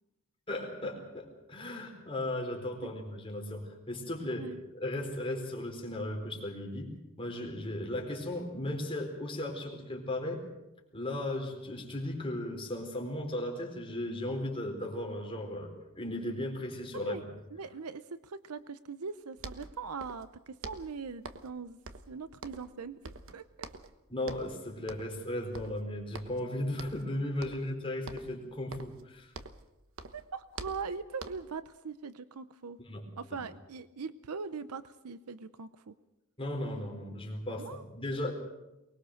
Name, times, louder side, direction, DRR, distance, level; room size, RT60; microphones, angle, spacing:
voice 1, 0.5-10.4 10.9-17.2 24.1-29.3 32.8-33.1 36.4-38.3, left 1 dB, 25° left, 1 dB, 4.2 m, -36 dB
voice 2, 17.5-21.8 22.1-23.4 30.1-32.8 33.2-35.9 37.6-37.8, right 5 dB, 85° right, 14 dB, 0.7 m, -41 dB
sound 1, 19.1-19.2 19.4-20.3 20.6-21.6 21.9-22.8 23.0-24.0 24.2-24.6 24.9-25.2 25.5-26.5 26.8-27.1 27.4-27.8 28.1-29.7 30.0-31.6, right 3 dB, 65° right, 1.2 m, -46 dB
23.5 x 20.5 x 6.5 m, 0.99 s
head